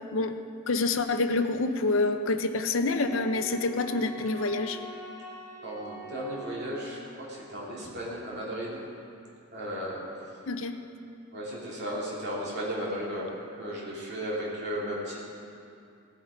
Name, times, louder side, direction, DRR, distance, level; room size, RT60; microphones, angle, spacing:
voice 1, 0.7-4.8 10.5-10.8, left 3 dB, 65° left, 8 dB, 0.7 m, -27 dB
Wind instrument woodwind instrument, 2.9-7.1, right 1 dB, 5° right, 3.0 m, -44 dB
voice 2, 5.6-8.8 9.5-10.0 11.3-13.3 13.6-15.3, equal, 50° right, -6 dB, 3.0 m, -35 dB
16.5 x 8.6 x 5.1 m, 2.5 s
head